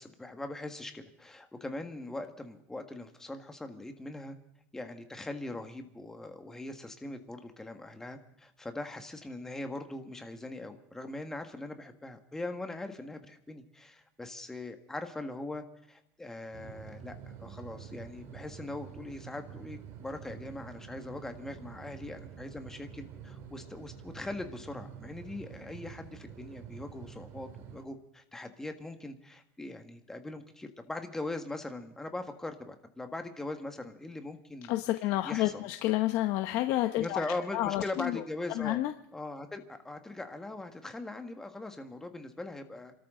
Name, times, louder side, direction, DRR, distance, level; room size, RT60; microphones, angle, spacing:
voice 1, 0.0-4.4 4.7-34.7 35.2-35.6 37.0-38.8 39.1-42.9, left 2 dB, 10° left, 6 dB, 1.7 m, -41 dB
sound 1, 16.5-27.9, right 8 dB, 50° right, 2.6 m, -48 dB
voice 2, 34.7-37.3 37.5-38.2 38.5-38.9, left 15 dB, 60° left, 7 dB, 1.0 m, -29 dB
28.5 x 13.5 x 3.8 m, 0.74 s
cardioid pair, 145°, 6 cm